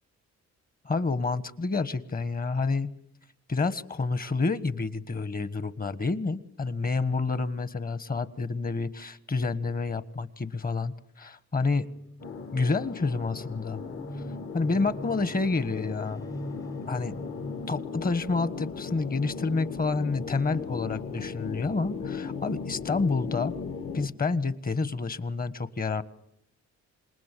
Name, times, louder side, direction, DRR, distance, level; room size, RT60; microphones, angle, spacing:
voice 1, 0.8-2.9 3.5-11.9 12.5-13.8 14.5-16.2 16.9-17.1 17.7-23.5 23.9-26.0, left 3 dB, 30° left, 15 dB, 1.4 m, -29 dB
sound 1, 11.9-18.1, equal, 10° left, 1.0 m, -43 dB
sound 2, 12.2-24.1, left 5 dB, 45° left, 1.7 m, -37 dB
27.0 x 21.0 x 9.2 m, 0.74 s
cardioid pair, 90°, 30 cm